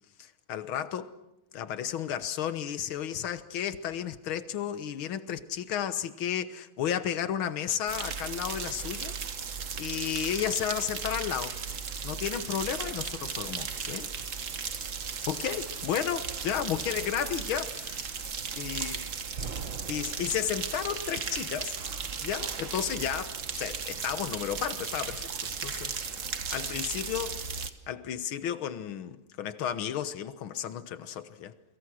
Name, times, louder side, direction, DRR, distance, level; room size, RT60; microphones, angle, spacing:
voice 1, 0.2-1.1 1.5-9.2 9.8-11.6 12.0-14.1 15.3-18.3 18.6-19.0 19.9-21.8 22.2-26.0 26.5-31.5, left 9 dB, 70° left, 2.0 m, -33 dB
sound 1, 7.9-27.7, right 6 dB, 40° right, 1.4 m, -36 dB
29.5 x 23.0 x 6.4 m
omnidirectional pair, 2.4 m